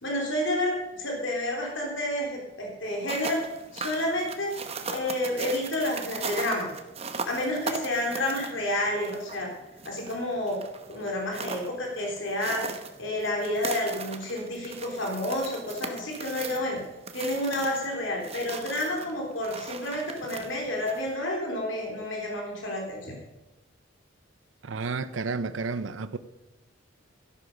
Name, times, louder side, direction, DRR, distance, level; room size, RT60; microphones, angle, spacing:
voice 1, 0.0-3.4 3.7-4.5 4.9-6.7 7.2-9.5 9.9-10.6 10.9-12.7 13.0-16.8 17.1-23.2, left 1 dB, 70° left, 3.4 m, -30 dB
sound 1, 2.9-21.1, right 5 dB, 30° right, 1.0 m, -39 dB
voice 2, 24.6-26.2, right 4 dB, 70° right, 0.6 m, -31 dB
13.0 x 11.5 x 5.3 m
head